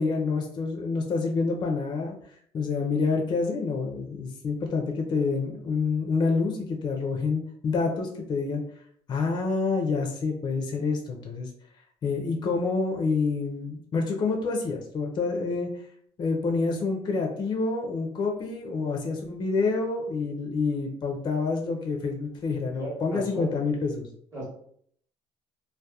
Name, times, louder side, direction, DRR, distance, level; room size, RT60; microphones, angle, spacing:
voice 1, 0.0-2.2 2.5-8.6 9.1-11.5 12.0-15.8 16.2-24.1, left 4 dB, 35° left, 2 dB, 0.4 m, -27 dB
voice 2, 22.7-23.5 24.3-24.4, right 1 dB, 20° right, -6 dB, 0.9 m, -35 dB
2.7 x 2.1 x 2.2 m, 0.63 s
cardioid pair, 140°, 13 cm